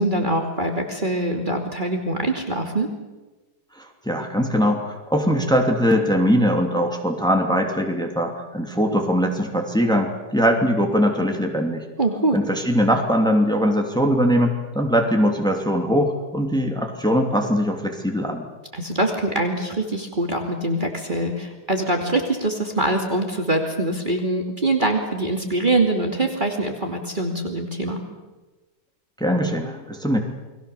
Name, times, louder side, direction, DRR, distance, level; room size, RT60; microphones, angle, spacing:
voice 1, 0.0-2.9 12.0-12.4 18.7-28.0, right 2 dB, 25° right, 2 dB, 2.7 m, -23 dB
voice 2, 3.8-11.8 12.3-18.5 29.2-30.2, equal, ahead, 2 dB, 2.8 m, -21 dB
29.5 x 21.5 x 7.0 m, 1.2 s
omnidirectional pair, 1.9 m